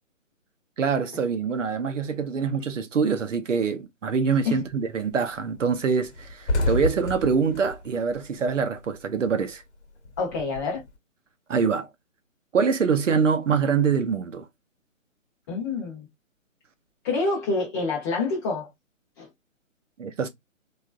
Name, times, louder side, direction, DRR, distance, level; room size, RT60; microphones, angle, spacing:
voice 1, 0.8-9.6 11.5-11.9 12.5-14.5 20.0-20.3, right 5 dB, 65° right, 0.8 m, -24 dB
sound 1, 4.4-4.7 5.1-5.2 5.5-5.6 6.0-9.0 9.2-10.9, left 1 dB, 55° left, 1.1 m, -29 dB
voice 2, 10.2-10.8 15.5-16.1 17.0-18.7 19.2-19.3, left 3 dB, 10° left, 0.8 m, -27 dB
3.3 x 2.6 x 2.4 m
figure-of-eight pair, 150°, 40 cm